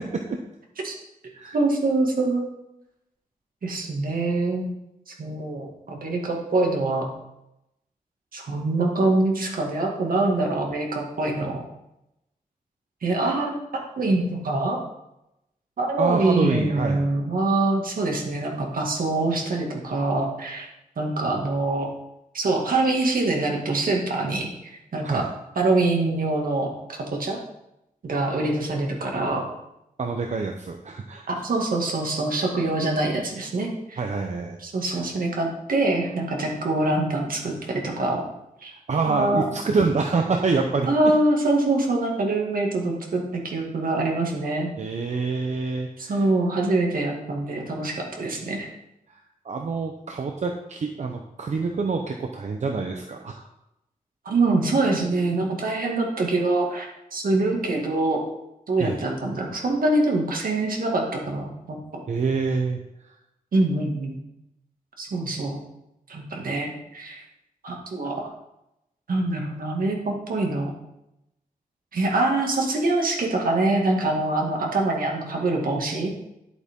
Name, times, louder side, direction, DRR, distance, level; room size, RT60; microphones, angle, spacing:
voice 1, 1.5-2.5 3.6-4.7 5.1-7.1 8.3-11.6 13.0-13.6 14.0-14.8 15.8-20.7 21.0-21.9 22.3-25.2 25.6-27.4 28.0-29.5 31.3-34.0 34.6-38.2 38.6-38.7 39.1-39.5 40.9-44.7 46.0-48.7 54.3-58.2 58.7-61.8 63.5-64.2 65.0-65.6 66.1-67.2 67.6-68.3 69.1-70.7 71.9-76.2, right 2 dB, 70° right, 0 dB, 2.1 m, -24 dB
voice 2, 16.0-17.0 25.0-25.3 30.0-31.2 34.0-34.6 34.9-35.0 38.7-40.9 44.8-46.2 49.1-53.5 58.8-59.0 62.1-63.2, right 4 dB, 50° right, 3 dB, 0.8 m, -26 dB
11.0 x 8.2 x 3.7 m, 0.87 s
wide cardioid pair, 165°, 15 cm